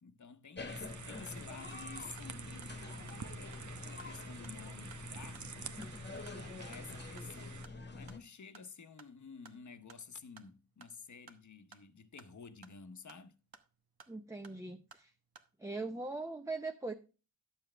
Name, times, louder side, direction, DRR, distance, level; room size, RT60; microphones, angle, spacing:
voice 1, 0.0-5.6 6.3-7.6 7.9-13.4, left 5 dB, 50° left, 0.9 m, -52 dB
sound 1, 0.6-8.2, left 3 dB, 30° left, 1.3 m, -46 dB
sound 2, 0.7-7.7, right 6 dB, 50° right, 0.8 m, -49 dB
sound 3, 1.2-15.5, right 5 dB, 75° right, 1.1 m, -62 dB
voice 2, 14.1-15.1 15.6-16.9, right 3 dB, 10° right, 0.7 m, -40 dB
11.5 x 7.3 x 3.3 m
wide cardioid pair, 85°, 37 cm